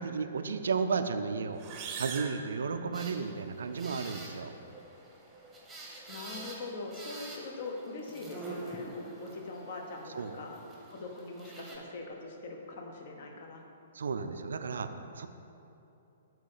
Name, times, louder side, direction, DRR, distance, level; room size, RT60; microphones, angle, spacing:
voice 1, 0.0-1.6 2.0-4.5 10.1-10.4 13.9-15.3, right 5 dB, 65° right, 9 dB, 0.3 m, -33 dB
sound 1, 1.5-3.4, right 6 dB, 30° right, 0.6 m, -42 dB
sound 2, 2.9-11.8, right 2 dB, 5° right, 1.0 m, -46 dB
voice 2, 6.1-10.6 10.9-13.6, left 3 dB, 50° left, 2 dB, 0.8 m, -42 dB
7.6 x 2.8 x 5.5 m, 2.9 s
figure-of-eight pair, 115°, 0 cm